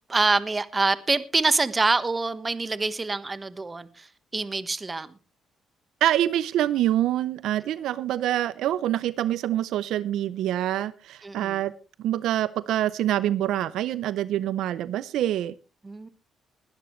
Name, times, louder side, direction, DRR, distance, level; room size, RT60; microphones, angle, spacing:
voice 1, 0.1-4.1 4.3-5.1 11.2-11.6 15.8-16.1, right 3 dB, 25° right, 14 dB, 1.3 m, -25 dB
voice 2, 6.0-11.7 12.0-15.5, right 12 dB, 85° right, 17 dB, 0.6 m, -25 dB
20.5 x 12.0 x 3.2 m, 0.32 s
cardioid pair, 90°, 0 cm